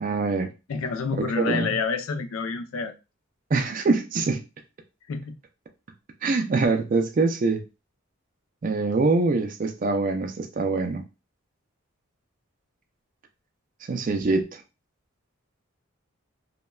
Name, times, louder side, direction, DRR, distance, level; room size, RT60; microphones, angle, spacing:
voice 1, 0.0-0.5 1.1-1.8 3.5-4.4 6.2-7.6 8.6-11.0 13.9-14.6, right 3 dB, 40° right, 0.3 m, -24 dB
voice 2, 0.7-2.9 5.1-5.4, left 4 dB, 80° left, 0.4 m, -28 dB
3.1 x 2.2 x 2.2 m
head